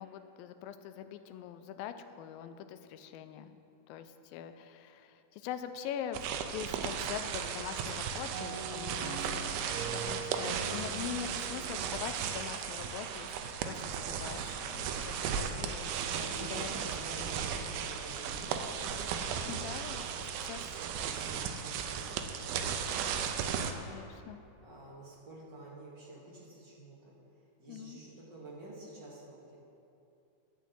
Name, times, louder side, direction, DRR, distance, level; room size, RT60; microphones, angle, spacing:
voice 1, 0.0-3.6 3.9-6.2 6.5-9.4 9.9-15.2 15.5-15.9 16.2-17.4 19.5-20.1 20.4-20.6 23.9-24.4 27.7-28.0, left 9 dB, 80° left, 9 dB, 2.3 m, -43 dB
sound 1, 6.1-23.7, right 7 dB, 85° right, 2.5 m, -36 dB
sound 2, 8.3-13.0, right 3 dB, 70° right, 1.8 m, -43 dB
voice 2, 15.1-19.0 19.4-19.8 20.0-20.5 21.0-23.8 24.6-27.1 27.6-29.6, right 2 dB, 40° right, -6 dB, 1.7 m, -50 dB
11.5 x 6.2 x 7.9 m, 2.7 s
omnidirectional pair, 4.3 m